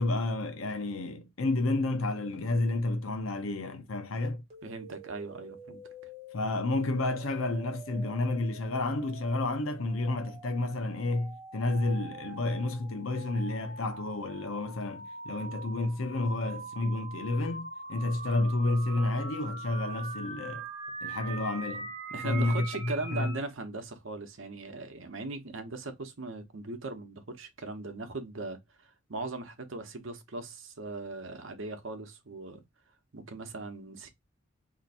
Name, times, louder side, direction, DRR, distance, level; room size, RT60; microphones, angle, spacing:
voice 1, 0.0-4.4 6.3-20.7 21.0-23.3, left 2 dB, 85° left, 0.7 m, -30 dB
sound 1, 4.5-23.4, right 3 dB, 30° right, 1.3 m, -44 dB
voice 2, 4.6-5.8 22.1-32.6 33.1-34.1, right 3 dB, 70° right, 0.8 m, -39 dB
2.9 x 2.5 x 4.1 m
head